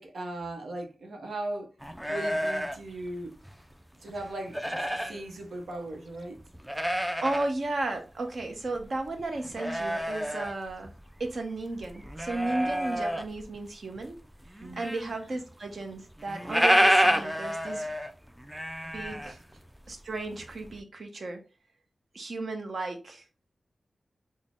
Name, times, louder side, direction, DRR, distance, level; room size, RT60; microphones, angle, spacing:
voice 1, 0.0-1.7 2.1-3.4 4.0-4.6 5.1-6.4 14.6-14.8 15.2-15.3 19.2-19.4, right 1 dB, 85° right, 0.8 m, -38 dB
sound 1, 1.8-3.7 4.1-5.2 5.7-5.8 6.4-7.5 7.8-7.9 8.3-11.3 11.6-13.6 14.0-15.1 15.4-15.5 15.7-15.8 16.1-19.9 20.3-20.8, equal, 5° right, 0.3 m, -29 dB
voice 2, 7.2-10.9 11.2-14.2 14.8-17.9 18.8-19.4 19.9-21.4 22.1-23.2, right 2 dB, 55° right, 0.8 m, -34 dB
4.0 x 2.1 x 3.5 m
wide cardioid pair, 135°, 0 cm